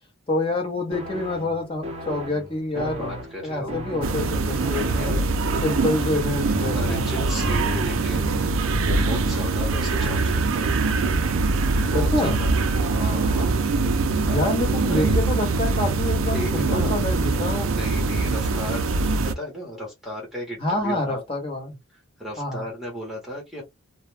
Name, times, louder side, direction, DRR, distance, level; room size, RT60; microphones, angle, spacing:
voice 1, 0.3-3.1 3.4-5.1 5.6-7.2 11.9-12.4 14.3-17.7 20.6-21.8 22.4-22.7, left 2 dB, 25° left, 0.9 m, -27 dB
sound 1, 0.9-8.3, equal, 30° right, 0.6 m, -35 dB
voice 2, 2.8-3.7 5.0-5.2 6.7-8.4 8.9-10.7 11.8-12.5 12.8-13.5 14.3-14.5 14.9-15.3 16.3-16.9 17.3-19.0 19.3-21.2 22.2-23.6, equal, ahead, 0.9 m, -34 dB
sound 2, 4.0-19.3, right 3 dB, 70° right, 0.4 m, -23 dB
2.4 x 2.1 x 3.1 m
head